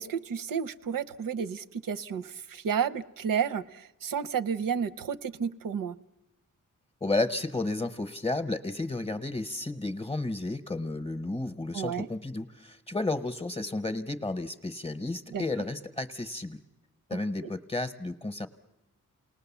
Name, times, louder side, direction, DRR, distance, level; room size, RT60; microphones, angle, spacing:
voice 1, 0.0-6.0 11.7-12.1 15.3-15.4 17.4-17.5, right 7 dB, 85° right, 15 dB, 0.8 m, -31 dB
voice 2, 7.0-16.6 17.1-18.5, left 2 dB, 20° left, 9 dB, 0.8 m, -32 dB
28.5 x 19.5 x 7.1 m, 0.89 s
wide cardioid pair, 180°, 33 cm